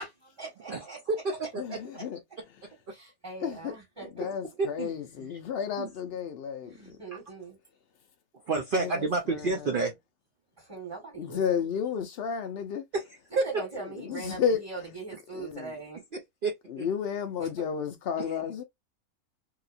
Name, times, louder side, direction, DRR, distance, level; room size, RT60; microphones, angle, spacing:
voice 1, 0.0-1.0 2.9-4.4 6.6-7.6 10.6-11.7 13.4-16.0 17.6-17.7, right 3 dB, 15° right, 1.4 m, -41 dB
voice 2, 0.7-1.8 2.9-3.0 4.2-4.3 4.6-4.9 5.2-5.3 5.8-5.9 7.1-7.2 8.5-9.9 12.9-13.0 13.4-13.6 16.1-16.8 18.2-18.3, right 3 dB, 55° right, 0.6 m, -30 dB
voice 3, 1.6-2.2 3.4-3.8 4.1-7.0 8.8-9.7 11.2-12.8 13.7-14.6 15.3-15.7 16.7-18.6, left 7 dB, 70° left, 0.5 m, -32 dB
2.9 x 2.8 x 2.4 m
omnidirectional pair, 1.6 m